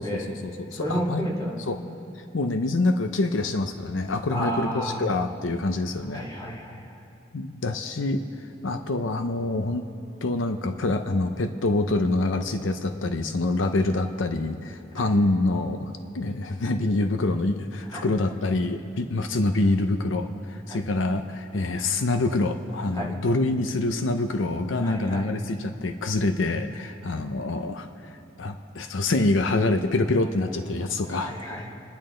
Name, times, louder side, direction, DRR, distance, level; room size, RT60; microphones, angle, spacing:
voice 1, 0.0-1.3 1.7-1.8 2.2-6.2 7.3-8.2 8.6-9.8 10.2-28.1 28.4-31.3, left 2 dB, 90° left, 8 dB, 0.7 m, -26 dB
voice 2, 0.7-1.6 4.3-5.0 6.1-6.8 15.0-15.1 17.9-18.1 20.7-20.8 22.9-23.1 24.8-25.3 31.1-31.7, equal, 20° left, -3 dB, 2.1 m, -31 dB
28.5 x 10.5 x 3.8 m, 2.6 s
head